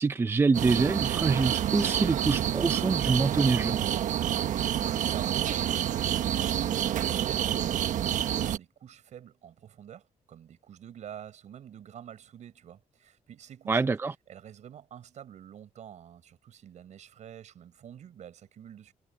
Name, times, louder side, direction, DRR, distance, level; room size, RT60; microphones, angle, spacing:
voice 1, 0.0-3.8 13.7-14.1, right 4 dB, 20° right, 0.6 m, -26 dB
sound 1, 0.5-8.6, right 10 dB, 85° right, 1.2 m, -28 dB
voice 2, 4.1-13.8 14.3-18.9, right 9 dB, 70° right, 5.2 m, -48 dB
wide cardioid pair, 160°, 13 cm